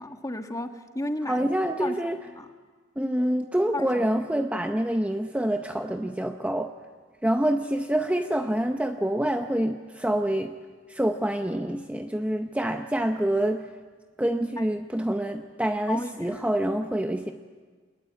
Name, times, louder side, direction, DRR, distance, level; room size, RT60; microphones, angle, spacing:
voice 1, 0.0-1.5 1.8-2.5 3.7-4.1 14.6-14.7 15.9-16.5, left 1 dB, 20° left, 6 dB, 1.5 m, -34 dB
voice 2, 1.3-2.2 3.0-6.7 7.2-10.5 10.9-13.7 14.2-17.3, right 1 dB, 5° right, 6 dB, 0.7 m, -26 dB
23.5 x 20.0 x 9.5 m, 1.5 s
head